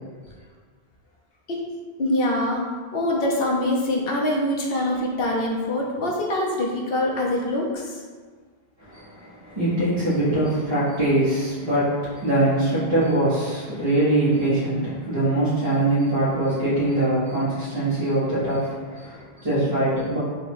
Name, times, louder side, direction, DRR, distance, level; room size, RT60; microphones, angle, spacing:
voice 1, 2.0-2.6 2.9-8.0, left 1 dB, 65° left, -1 dB, 0.9 m, -24 dB
voice 2, 8.8-20.2, right 1 dB, 35° right, -14 dB, 1.6 m, -23 dB
3.6 x 2.9 x 4.6 m, 1.5 s
omnidirectional pair, 1.1 m